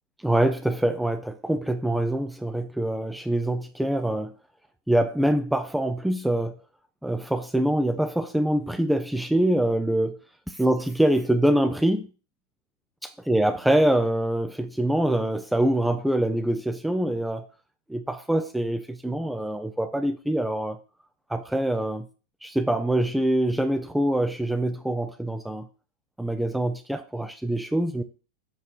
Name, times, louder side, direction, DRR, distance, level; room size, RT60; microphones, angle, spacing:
voice 1, 0.2-4.3 4.9-6.6 7.0-10.2 10.6-12.1 13.3-17.5 17.9-20.8 21.3-22.1 22.4-25.7 26.2-28.0, right 1 dB, 5° right, 0.5 m, -24 dB
7.5 x 3.1 x 5.9 m
figure-of-eight pair, 90°, 0 cm